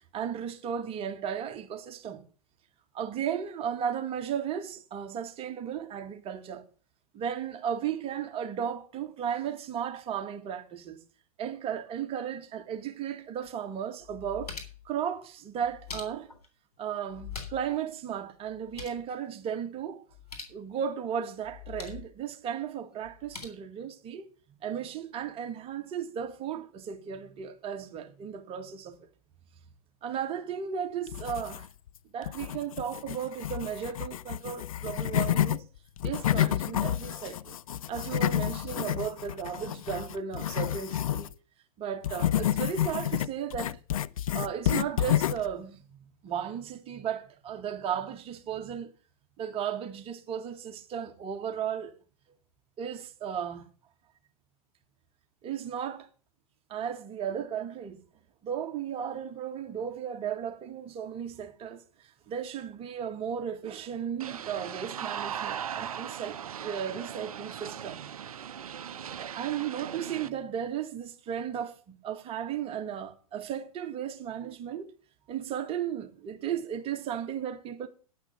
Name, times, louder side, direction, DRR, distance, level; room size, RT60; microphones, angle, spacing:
voice 1, 0.1-2.2 2.9-6.7 7.1-11.0 11.4-14.6 14.9-16.3 16.8-20.0 20.5-24.3 24.6-29.0 30.0-31.7 32.1-35.6 36.0-37.6 37.9-41.3 41.8-43.8 44.3-45.8 46.2-48.9 49.4-52.0 52.8-53.7 55.4-56.1 56.7-58.0 58.4-61.8 62.3-68.0 69.2-74.9 75.3-77.9, right 8 dB, 30° right, 1.9 m, -35 dB
sound 1, 13.4-13.5 14.0-14.9 15.6-16.5 17.1-17.8 18.0-18.1 18.5-19.0 20.1-20.6 21.4-22.1 23.0-23.4, left 6 dB, 85° left, 3.4 m, -43 dB
sound 2, 31.1-31.9 32.2-35.6 36.0-41.3 42.0-45.5, left 11 dB, 65° left, 0.5 m, -29 dB
sound 3, 64.2-70.3, right 9 dB, 70° right, 0.6 m, -38 dB
10.5 x 5.9 x 7.1 m
figure-of-eight pair, 100°, 19 cm